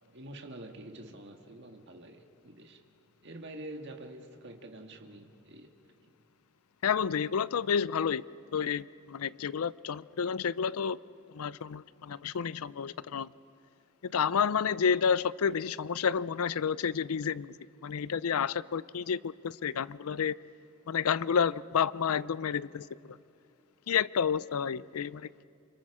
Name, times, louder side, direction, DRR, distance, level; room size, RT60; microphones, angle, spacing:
voice 1, 0.0-2.8 3.2-5.7 6.0-6.1, right 1 dB, 55° right, 1.8 m, -46 dB
voice 2, 6.8-8.2 8.5-11.0 11.3-13.3 14.0-17.5 17.8-20.4 20.9-22.9 23.9-25.4, left 7 dB, 90° left, 0.5 m, -30 dB
29.0 x 26.5 x 4.9 m
head